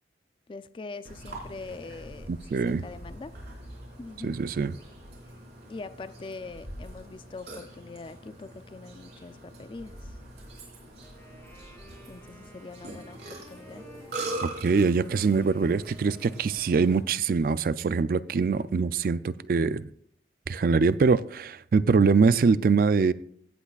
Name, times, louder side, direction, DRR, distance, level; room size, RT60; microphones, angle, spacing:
voice 1, 0.5-3.3 4.0-4.3 5.7-10.2 12.1-13.8, left 3 dB, 30° left, 0.3 m, -43 dB
Burping eructation, 1.0-17.0, right 2 dB, 70° right, 3.7 m, -43 dB
voice 2, 2.3-2.8 4.2-4.8 14.4-19.9 20.5-23.1, right 4 dB, 50° right, 0.3 m, -23 dB
Wind instrument woodwind instrument, 11.0-16.9, right 1 dB, 10° left, 2.1 m, -54 dB
16.5 x 8.2 x 2.4 m
head